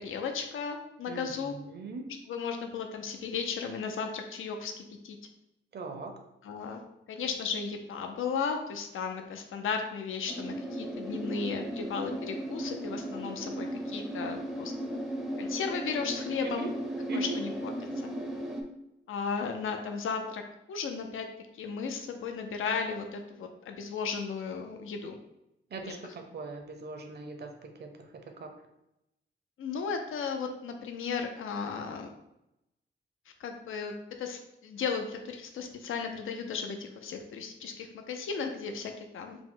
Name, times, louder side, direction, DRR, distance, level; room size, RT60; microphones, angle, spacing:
voice 1, 0.0-1.6 2.3-5.2 6.4-6.8 7.1-15.0 15.4-16.7 17.1-18.1 19.1-20.4 20.7-21.3 21.5-25.2 29.6-32.1 33.4-33.9 34.2-39.4, left 5 dB, 85° left, 5 dB, 0.5 m, -35 dB
voice 2, 1.1-2.1 5.7-6.1 16.4-16.7 17.1-17.4 25.7-27.9 28.4-28.5, right 3 dB, 55° right, 4 dB, 0.6 m, -40 dB
sound 1, 10.3-18.6, equal, ahead, 0.5 m, -36 dB
4.8 x 2.0 x 3.7 m, 0.87 s
wide cardioid pair, 145°, 20 cm